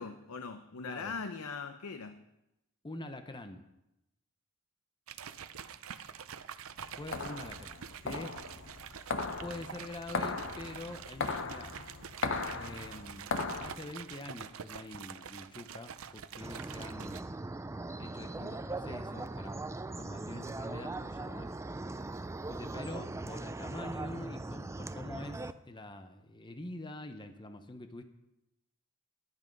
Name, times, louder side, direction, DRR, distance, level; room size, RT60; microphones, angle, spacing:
voice 1, 0.0-2.2, left 4 dB, 85° left, 0.7 m, -41 dB
voice 2, 0.8-1.1 2.8-3.6 7.0-8.4 9.4-11.7 12.5-13.3 13.6-17.3 18.0-19.5 20.0-21.9 22.5-28.0, left 2 dB, 20° left, 0.8 m, -45 dB
sound 1, 5.1-17.2, right 8 dB, 70° right, 0.6 m, -46 dB
sound 2, 6.8-13.8, left 4 dB, 60° left, 1.0 m, -38 dB
sound 3, 16.4-25.5, right 2 dB, 15° right, 0.3 m, -40 dB
11.0 x 10.5 x 5.3 m
head